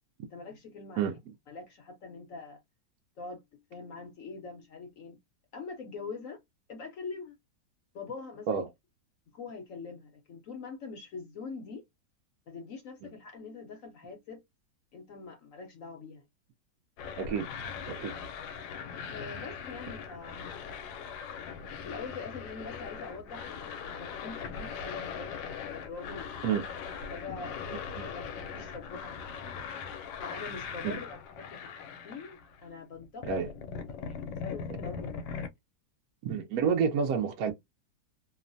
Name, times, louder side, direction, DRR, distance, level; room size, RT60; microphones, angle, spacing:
voice 1, 0.3-1.2 1.5-2.6 3.2-5.2 5.5-6.4 6.7-7.3 7.9-8.7 9.3-11.8 12.5-14.4 14.9-16.2 19.1-20.7 21.8-25.4 25.7-26.4 27.1-27.6 28.0-29.7 30.2-31.6 32.0-33.4 33.9-35.3, left 4 dB, 65° left, 0.8 m, -44 dB
sound 1, 17.0-32.7 33.0-35.5, left 6 dB, 85° left, 1.3 m, -40 dB
voice 2, 17.2-17.5 17.9-18.1 26.4-26.6 28.0-28.1 30.8-31.0 33.3-33.5 36.2-37.5, right 7 dB, 70° right, 0.9 m, -29 dB
3.0 x 2.1 x 2.5 m
omnidirectional pair, 2.0 m